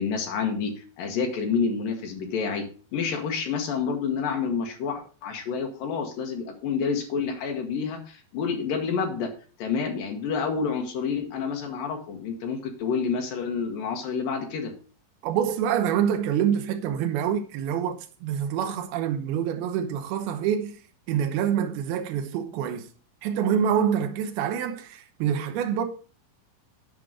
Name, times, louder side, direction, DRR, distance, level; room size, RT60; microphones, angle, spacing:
voice 1, 0.0-2.7 2.9-9.3 9.6-14.7, left 5 dB, 70° left, 2.2 m, -28 dB
voice 2, 15.2-20.8 21.1-22.8 23.2-25.8, right 8 dB, 85° right, 2.2 m, -26 dB
10.5 x 5.3 x 4.9 m
omnidirectional pair, 5.7 m